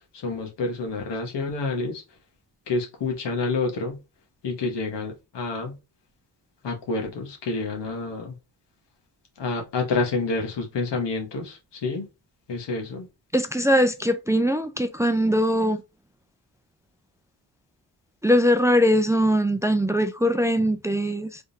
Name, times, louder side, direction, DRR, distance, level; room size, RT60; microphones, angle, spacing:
voice 1, 0.2-2.0 2.7-4.0 4.4-5.8 6.6-8.4 9.4-12.1 12.5-13.1, left 3 dB, 85° left, 1.3 m, -28 dB
voice 2, 13.3-15.8 18.2-21.4, equal, 10° right, 0.4 m, -21 dB
3.6 x 3.4 x 2.7 m
cardioid pair, 75°, 41 cm